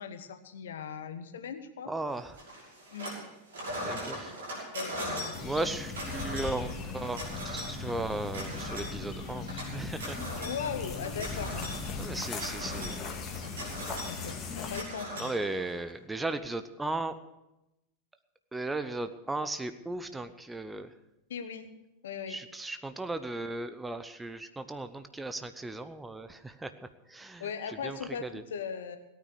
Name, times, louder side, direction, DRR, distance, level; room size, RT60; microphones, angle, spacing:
voice 1, 0.0-1.9 2.9-3.1 4.7-5.7 10.4-11.7 12.1-12.4 14.1-15.3 21.3-21.8 22.0-22.4 27.4-29.0, left 7 dB, 60° left, 10 dB, 1.3 m, -39 dB
voice 2, 1.8-2.4 3.8-4.3 5.4-10.2 12.0-13.1 15.2-17.1 18.5-20.9 22.3-26.7 27.1-27.5 27.8-28.4, right 2 dB, 10° right, 10 dB, 0.8 m, -36 dB
sound 1, 2.4-3.2 3.5-15.9, equal, 60° right, 6.0 m, -40 dB
sound 2, 5.3-14.8, left 4 dB, 30° left, 1.9 m, -38 dB
17.5 x 9.3 x 6.5 m, 0.91 s
figure-of-eight pair, 90°, 0 cm